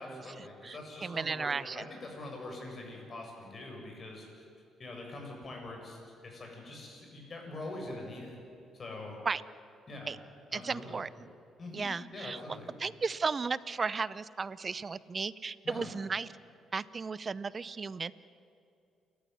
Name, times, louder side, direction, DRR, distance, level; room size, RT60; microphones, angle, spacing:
voice 1, 0.0-4.4 4.8-8.4 8.7-9.2 9.9-10.1 10.5-11.0 11.6-12.8 15.6-15.9, left 2 dB, 40° left, 1 dB, 7.6 m, -44 dB
voice 2, 0.6-1.9 9.3-9.4 10.1-10.2 10.5-11.3 11.7-16.3 16.7-18.1, right 4 dB, 35° right, 18 dB, 0.7 m, -35 dB
29.5 x 13.5 x 9.5 m, 2.5 s
cardioid pair, 90°, 0 cm